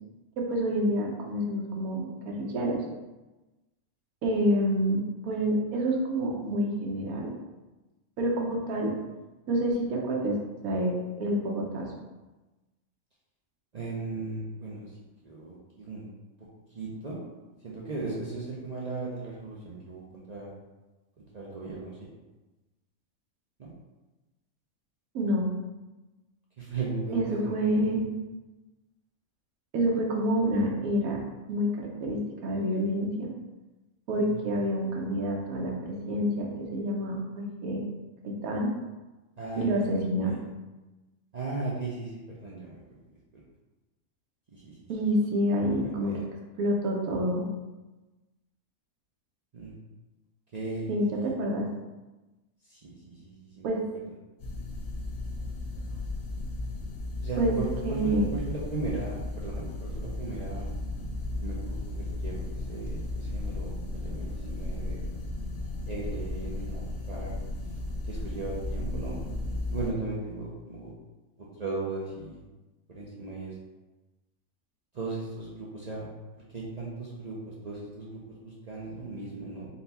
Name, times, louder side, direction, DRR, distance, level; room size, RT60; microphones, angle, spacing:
voice 1, 0.4-2.8 4.2-7.3 8.2-8.9 9.5-10.4 10.6-11.9 25.1-25.5 27.1-28.1 29.7-31.2 31.5-33.3 34.1-37.8 38.2-38.7 39.6-40.4 44.9-46.2 46.6-47.5 50.9-51.7 53.6-53.8 57.4-57.5 57.8-58.3, equal, 85° right, -1 dB, 1.2 m, -28 dB
voice 2, 13.7-14.9 15.2-16.1 16.7-17.2 17.6-20.5 21.2-22.1 23.6-23.7 26.6-28.0 34.2-34.4 39.4-40.4 41.3-43.0 43.3-43.4 44.5-44.8 45.7-46.2 49.5-49.7 50.5-51.3 52.7-53.8 57.2-60.7 61.4-65.2 65.9-67.3 68.0-69.2 69.7-70.9 71.4-72.4 72.9-73.5 74.9-76.1 76.5-79.7, right 3 dB, 60° right, -5 dB, 0.4 m, -37 dB
sound 1, 54.4-69.9, left 2 dB, 80° left, 1.3 m, -35 dB
4.1 x 2.3 x 4.0 m, 1.1 s
omnidirectional pair, 1.5 m